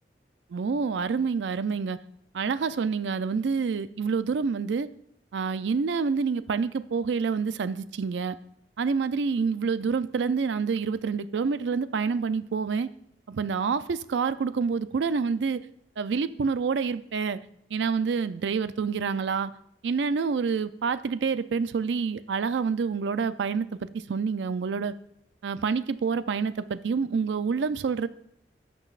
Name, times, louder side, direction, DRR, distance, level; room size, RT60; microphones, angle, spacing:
voice 1, 0.5-2.0 2.3-4.9 5.3-8.4 8.8-12.9 13.3-15.6 16.0-17.4 17.7-19.5 19.8-24.9 25.4-28.1, right 5 dB, 85° right, 14 dB, 0.4 m, -27 dB
16.0 x 6.1 x 2.4 m, 0.73 s
head